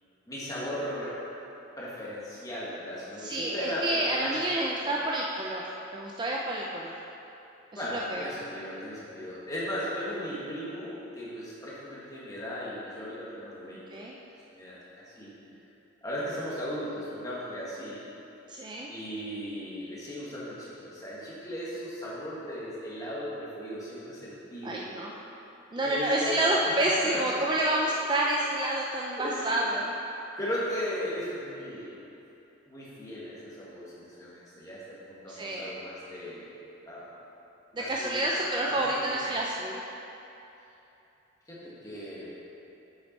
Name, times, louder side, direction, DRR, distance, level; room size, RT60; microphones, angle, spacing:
voice 1, 0.3-1.2 1.8-4.4 4.8-5.0 7.7-13.8 14.5-14.8 15.1-15.3 16.0-18.0 18.9-24.8 25.8-27.4 29.1-29.8 30.4-31.9 32.7-36.5 36.9-37.0 37.8-39.4 41.5-42.3, equal, 15° left, -8 dB, 1.5 m, -37 dB
voice 2, 3.2-5.6 5.9-6.9 7.9-8.3 13.9-14.1 18.5-18.9 24.6-25.1 25.7-29.9 35.3-35.7 37.7-39.9, right 1 dB, 20° right, -3 dB, 0.4 m, -29 dB
7.2 x 6.4 x 4.2 m, 3.0 s
head